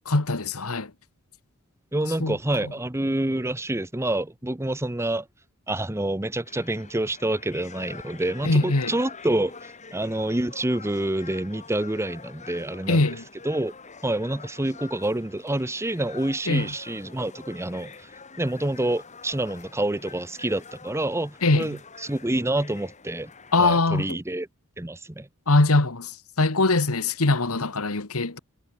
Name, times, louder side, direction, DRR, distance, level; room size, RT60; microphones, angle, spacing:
voice 1, 0.1-0.9 2.2-2.4 2.6-2.7 8.4-8.9 12.9-13.2 16.5-16.7 21.4-21.7 23.5-24.1 25.5-28.4, left 2 dB, 75° left, 1.7 m, -22 dB
voice 2, 1.9-5.3 5.7-13.1 13.4-13.7 14.0-18.1 18.4-23.3 23.6-24.5 24.8-25.3, right 1 dB, 10° right, 0.9 m, -27 dB
sound 1, 6.5-23.6, left 5 dB, 35° left, 2.3 m, -46 dB
head